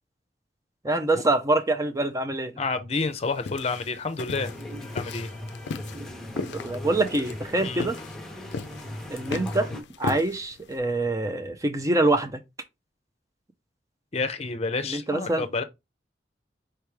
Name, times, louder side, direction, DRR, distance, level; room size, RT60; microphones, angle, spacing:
voice 1, 0.8-2.5 6.4-8.0 9.1-9.7 10.0-12.4 14.9-15.5, right 2 dB, 20° right, 0.5 m, -25 dB
voice 2, 2.6-4.5 4.8-5.3 7.6-7.9 14.1-15.6, left 4 dB, 40° left, 0.6 m, -29 dB
sound 1, 3.0-10.8, left 4 dB, 85° left, 0.4 m, -37 dB
sound 2, 4.3-9.8, left 1 dB, 5° left, 0.9 m, -38 dB
4.6 x 3.1 x 3.3 m
head